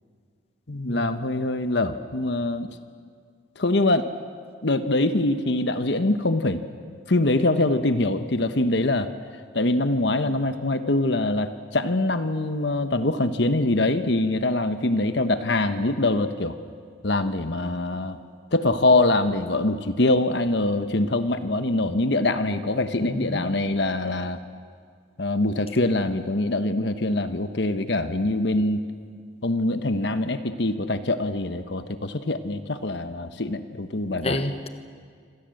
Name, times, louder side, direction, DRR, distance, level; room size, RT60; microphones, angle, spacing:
voice 1, 0.7-2.7 3.6-4.1 4.6-6.6 7.1-9.1 9.5-16.5 17.0-18.2 18.5-24.4 25.2-28.8 29.4-34.4, left 2 dB, 65° left, 10 dB, 1.2 m, -24 dB
voice 2, 23.0-23.5 34.2-34.7, left 1 dB, 30° left, 8 dB, 1.3 m, -29 dB
27.0 x 26.0 x 7.8 m, 2.1 s
head